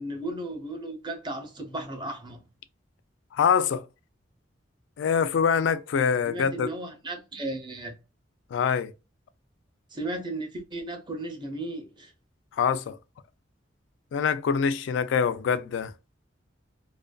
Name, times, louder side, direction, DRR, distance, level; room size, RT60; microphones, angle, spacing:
voice 1, 0.0-2.4 6.3-7.9 9.9-12.1, right 1 dB, 25° right, 0.6 m, -35 dB
voice 2, 3.3-3.9 5.0-6.7 8.5-8.9 12.6-13.0 14.1-15.9, left 6 dB, 75° left, 0.3 m, -24 dB
2.4 x 2.2 x 2.2 m
head